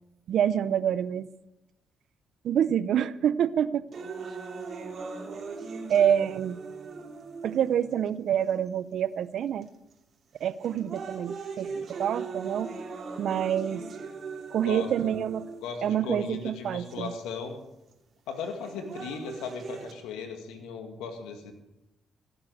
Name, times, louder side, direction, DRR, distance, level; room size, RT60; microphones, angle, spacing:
voice 1, 0.3-1.3 2.4-3.8 5.9-6.6 7.4-9.7 10.4-12.7 13.2-13.8 14.5-15.5 15.8-17.1, right 9 dB, 70° right, 17 dB, 0.6 m, -27 dB
sound 1, 3.9-7.9 8.7-8.8 9.6-9.9 10.4-15.9 16.9-17.0 18.4-19.9, right 4 dB, 55° right, 3.1 m, -39 dB
voice 2, 14.6-15.1 15.6-17.5 18.3-21.5, left 5 dB, 85° left, 5 dB, 2.1 m, -37 dB
16.5 x 8.8 x 6.5 m, 0.91 s
supercardioid pair, 60°, 0 cm